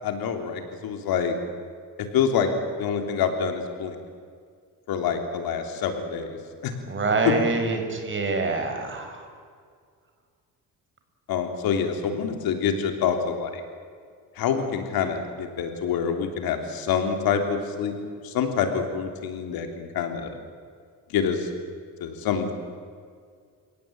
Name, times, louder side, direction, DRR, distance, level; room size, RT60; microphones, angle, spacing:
voice 1, 0.0-1.4 2.1-2.5 2.8-4.0 4.9-6.4 6.6-6.7 7.2-7.3 11.3-13.6 14.3-17.9 18.2-20.3 21.1-21.5 22.0-22.5, left 7 dB, 85° left, 5 dB, 3.4 m, -26 dB
voice 2, 6.9-9.2, right 3 dB, 35° right, 4 dB, 5.3 m, -25 dB
29.5 x 17.5 x 8.9 m, 2.1 s
cardioid pair, 120°, 35 cm